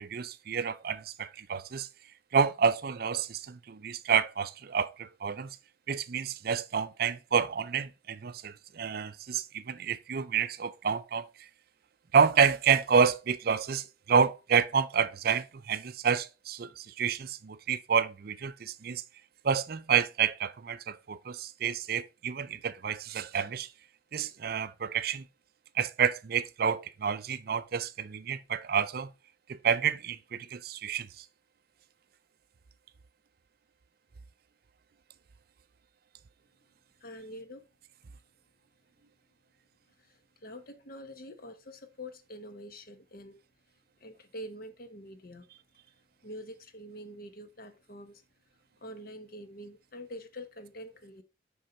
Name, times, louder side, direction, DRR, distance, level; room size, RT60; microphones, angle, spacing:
voice 1, 0.0-1.9 2.3-5.6 5.9-11.5 12.1-19.0 19.4-23.7 24.1-25.2 25.8-29.1 29.5-31.2, right 6 dB, 50° right, 0.4 m, -29 dB
voice 2, 37.0-37.6 40.0-43.4 44.0-45.5 46.2-48.2 48.8-51.2, equal, 50° left, 1.0 m, -45 dB
6.4 x 5.4 x 4.3 m
head